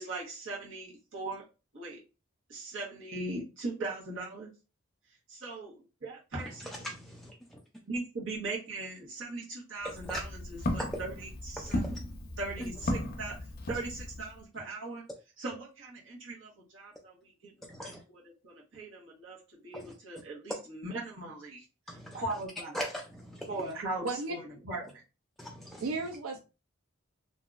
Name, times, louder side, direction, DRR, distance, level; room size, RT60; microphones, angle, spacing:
voice 1, 0.0-1.4 1.7-2.0 2.5-4.5 5.3-6.9 7.9-11.8 12.4-13.3 13.7-15.0 15.4-21.6 21.9-22.8 23.5-24.4 24.6-24.9, right 2 dB, 65° right, 1.2 m, -39 dB
voice 2, 6.8-7.6 9.8-10.2 10.8-11.0 11.6-12.0 12.6-12.7 17.7-18.0 19.7-19.9 21.9-22.2 22.7-23.5 25.4-25.8, equal, ahead, 0.4 m, -40 dB
Walk footsteps, 9.8-14.4, left 1 dB, 50° left, 0.6 m, -36 dB
voice 3, 24.0-24.4 25.8-26.4, right 3 dB, 85° right, 0.5 m, -34 dB
2.9 x 2.6 x 2.4 m
head